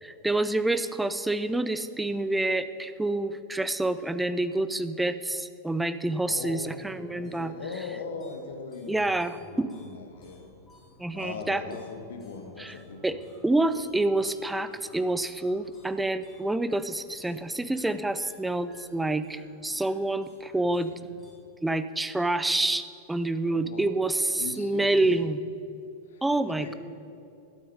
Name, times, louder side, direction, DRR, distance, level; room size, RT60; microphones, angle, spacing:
voice 1, 0.0-7.5 8.9-9.7 11.0-11.6 12.6-12.7 13.0-20.9 21.6-25.4 26.2-26.7, right 2 dB, 5° right, 12 dB, 0.5 m, -27 dB
voice 2, 6.3-10.4 11.1-13.2 20.9-21.1 23.4-23.9 24.4-25.2 26.1-26.7, left 4 dB, 60° left, 5 dB, 1.3 m, -40 dB
sound 1, 7.2-21.3, left 2 dB, 20° left, 2.5 m, -58 dB
12.0 x 8.5 x 5.3 m, 2.6 s
figure-of-eight pair, 90°, 0 cm